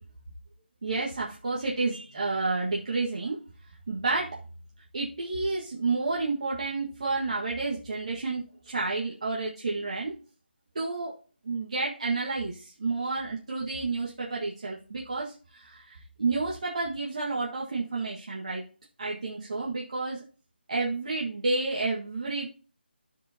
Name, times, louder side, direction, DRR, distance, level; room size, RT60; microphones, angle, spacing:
voice 1, 0.8-3.4 3.9-4.4 4.9-10.1 10.7-11.1 11.4-18.6 19.0-20.2 20.7-22.6, right 3 dB, 35° right, -4 dB, 1.7 m, -30 dB
15.0 x 5.0 x 2.8 m, 0.37 s
figure-of-eight pair, 175°, 6 cm